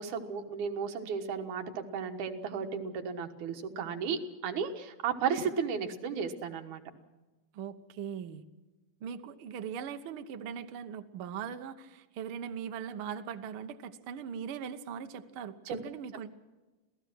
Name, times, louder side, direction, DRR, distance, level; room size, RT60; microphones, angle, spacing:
voice 1, 0.0-6.8 15.7-15.8, right 6 dB, 85° right, 5 dB, 3.0 m, -34 dB
voice 2, 7.5-8.5 9.0-16.3, right 7 dB, 60° right, 8 dB, 1.6 m, -40 dB
27.0 x 17.5 x 6.2 m, 1.2 s
omnidirectional pair, 3.4 m